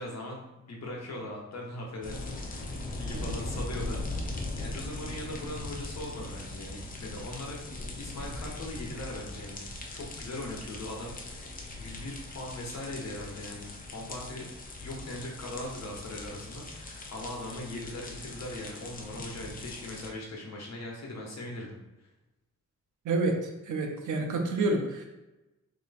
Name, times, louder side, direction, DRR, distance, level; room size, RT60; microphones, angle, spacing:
voice 1, 0.0-4.0 4.6-7.6 8.0-14.5 14.8-22.1, left 1 dB, 65° left, -1 dB, 1.1 m, -40 dB
sound 1, 2.0-20.1, left 2 dB, 30° left, 0.5 m, -40 dB
voice 2, 23.0-23.4 23.7-25.1, right 2 dB, 90° right, 3 dB, 0.7 m, -28 dB
3.2 x 3.0 x 4.0 m, 1.0 s
wide cardioid pair, 155°, 30 cm